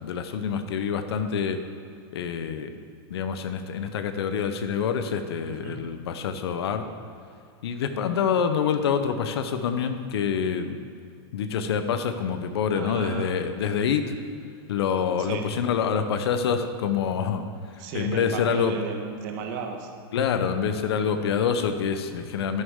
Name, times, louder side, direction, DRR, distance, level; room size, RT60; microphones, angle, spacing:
voice 1, 0.0-1.6 2.1-2.7 3.1-6.9 7.6-10.8 11.3-14.2 14.7-17.4 17.7-18.8 20.1-22.6, left 7 dB, 85° left, 8 dB, 0.8 m, -26 dB
voice 2, 12.7-13.3 15.2-15.4 17.8-19.9, right 6 dB, 50° right, 4 dB, 1.3 m, -34 dB
11.0 x 10.0 x 3.7 m, 2.4 s
supercardioid pair, 145°, 13 cm